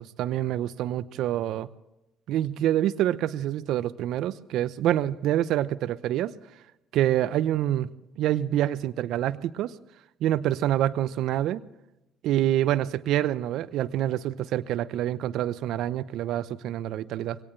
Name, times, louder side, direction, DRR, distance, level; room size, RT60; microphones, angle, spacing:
voice 1, 0.0-1.7 2.3-6.3 6.9-7.9 8.2-9.7 10.2-11.6 12.2-17.4, right 12 dB, 70° right, 14 dB, 0.8 m, -26 dB
22.5 x 18.0 x 3.2 m, 0.92 s
hypercardioid pair, 60°, 0 cm